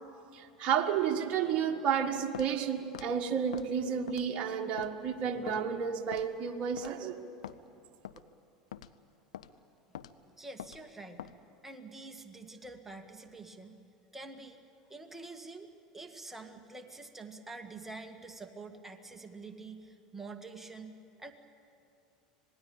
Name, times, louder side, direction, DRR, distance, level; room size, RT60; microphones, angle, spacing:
voice 1, 0.3-7.2, right 7 dB, 40° right, 3 dB, 1.7 m, -31 dB
Walk footsteps, 2.3-2.5 2.9-3.1 3.5-3.7 4.1-4.4 4.8-4.9 5.5-5.6 6.1-6.3 6.8-7.0 7.4-7.6 8.0-8.2 8.7-8.9 9.3-9.5 9.9-10.1 10.6-10.8 11.2-11.4, left 11 dB, 70° left, 0.7 m, -44 dB
voice 2, 9.9-11.3 11.6-13.8 14.1-14.6 14.9-21.3, right 3 dB, 10° right, 4 dB, 2.0 m, -47 dB
26.0 x 19.5 x 8.8 m, 2.7 s
figure-of-eight pair, 80°, 4 cm